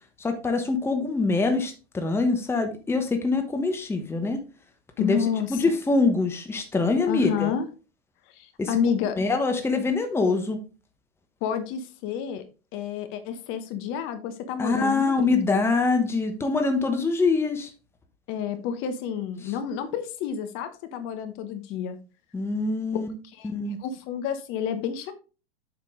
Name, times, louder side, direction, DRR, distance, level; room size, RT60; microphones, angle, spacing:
voice 1, 0.2-4.4 5.0-7.5 8.6-8.7 9.2-10.6 14.6-17.7 22.3-23.1 23.4-23.8, left 3 dB, 5° left, 6 dB, 1.0 m, -24 dB
voice 2, 5.0-5.5 7.1-7.7 8.3-9.2 11.4-12.4 12.7-15.6 18.3-22.0 22.9-23.0 23.4-23.5 23.8-25.1, left 8 dB, 40° left, 9 dB, 1.1 m, -29 dB
7.8 x 5.9 x 3.6 m, 0.33 s
figure-of-eight pair, 95°, 33 cm